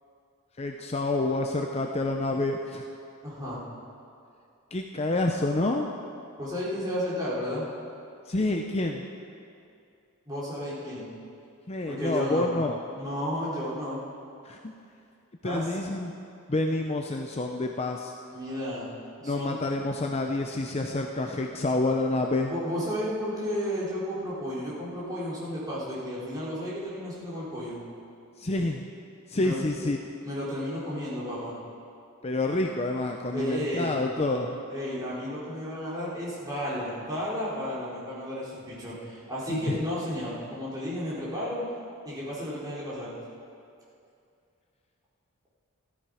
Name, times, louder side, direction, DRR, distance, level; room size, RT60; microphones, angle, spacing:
voice 1, 0.6-2.8 4.7-5.9 8.3-9.1 11.7-12.8 14.4-14.7 15.4-16.1 16.5-18.1 19.2-22.5 28.4-28.9 29.3-30.0 32.2-34.5 39.5-39.8, left 2 dB, 30° left, 3 dB, 0.6 m, -28 dB
voice 2, 3.2-3.6 6.4-7.7 10.3-11.1 11.8-12.5 12.9-14.0 15.4-15.7 18.3-18.9 19.2-19.6 20.6-20.7 22.5-27.8 29.4-29.6 30.2-31.6 33.3-34.0 34.7-41.6 42.0-43.1, equal, 20° right, -8 dB, 4.0 m, -33 dB
14.5 x 13.5 x 4.9 m, 2.5 s
head